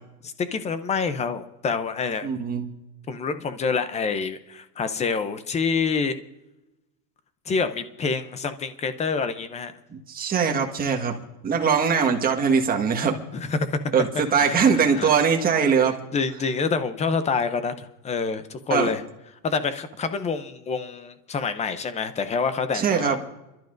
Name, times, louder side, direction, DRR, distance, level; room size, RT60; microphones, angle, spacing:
voice 1, 0.2-2.3 3.1-6.2 7.5-9.7 11.7-11.8 13.3-13.8 14.1-15.1 16.1-19.0 19.4-23.2, left 5 dB, 15° left, 11 dB, 0.6 m, -27 dB
voice 2, 2.2-2.7 9.9-11.2 11.4-13.2 13.9-16.0 18.7-18.9 22.7-23.2, right 6 dB, 20° right, 1 dB, 1.6 m, -22 dB
29.5 x 12.0 x 2.6 m, 0.96 s
supercardioid pair, 135°, 50 cm